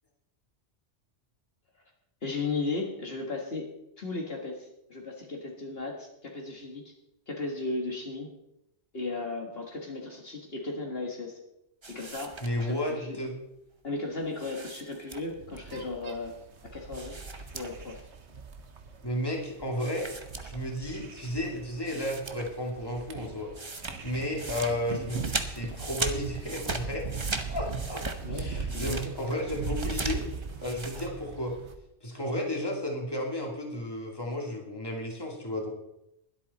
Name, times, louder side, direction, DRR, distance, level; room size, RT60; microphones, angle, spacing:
voice 1, 2.2-3.7 4.0-6.8 7.3-8.3 8.9-11.4 11.9-13.2 13.8-16.3 16.6-18.1 28.2-29.1, left 3 dB, 55° left, 0 dB, 1.9 m, -36 dB
sound 1, 11.8-12.9 14.3-15.5 16.9-18.0 18.3-18.4 19.8-21.0 21.5-21.6 21.9-22.7 23.0-31.1, right 3 dB, 25° right, 0.9 m, -39 dB
voice 2, 12.4-13.3 19.0-20.1 20.4-27.1 27.5-30.3 30.6-31.6 32.0-35.7, left 1 dB, 20° left, 0 dB, 2.5 m, -33 dB
sound 2, 15.3-31.7, right 4 dB, 70° right, 1.5 m, -39 dB
22.0 x 8.3 x 4.2 m, 0.85 s
omnidirectional pair, 1.2 m